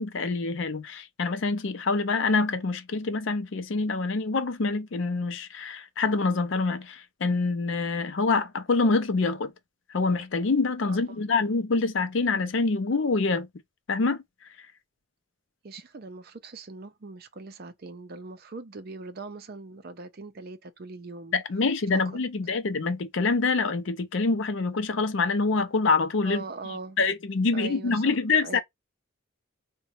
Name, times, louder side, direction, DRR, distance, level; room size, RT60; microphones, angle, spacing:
voice 1, 0.0-9.5 9.9-13.5 13.9-14.2 14.6-14.7 21.3-26.4 27.0-28.6, left 3 dB, 60° left, 0.5 m, -26 dB
voice 2, 10.9-11.2 15.6-21.3 21.9-22.0 26.2-27.0 27.5-28.1 28.4-28.6, right 3 dB, 45° right, 0.5 m, -41 dB
3.8 x 2.2 x 2.9 m
head